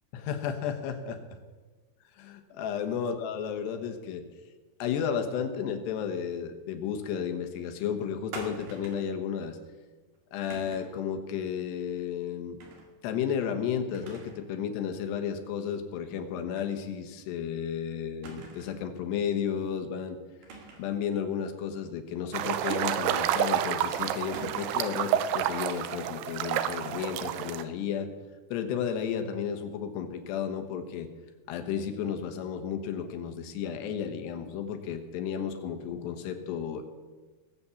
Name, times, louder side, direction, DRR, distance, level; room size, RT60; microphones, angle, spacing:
voice 1, 0.1-1.2 2.1-4.2 4.8-9.6 10.3-12.6 13.0-20.2 20.8-28.1 28.5-31.1 31.5-36.8, left 8 dB, 85° left, 6 dB, 3.4 m, -33 dB
sound 1, 8.3-9.1 10.5-11.0 12.6-12.9 13.3-13.4 13.9-14.5 14.8-14.9 16.5-16.7 17.1-17.2 18.2-18.9 20.4-21.0 22.8-23.4 24.3-25.0, right 3 dB, 60° right, 3.4 m, -45 dB
sound 2, 22.3-27.6, right 10 dB, 80° right, 2.6 m, -29 dB
18.5 x 8.2 x 7.0 m, 1.3 s
omnidirectional pair, 4.8 m